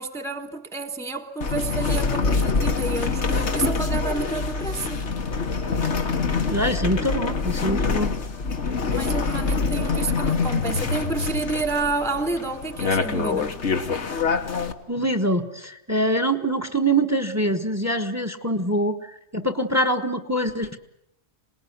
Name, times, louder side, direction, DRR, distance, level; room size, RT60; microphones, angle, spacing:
voice 1, 0.0-5.0 8.9-13.6, right 3 dB, ahead, 1.2 m, -29 dB
sound 1, 1.4-14.7, left 4 dB, 80° left, 1.8 m, -25 dB
voice 2, 6.5-8.1 14.9-20.8, right 1 dB, 15° right, 1.3 m, -24 dB
26.5 x 20.0 x 9.5 m
omnidirectional pair, 1.2 m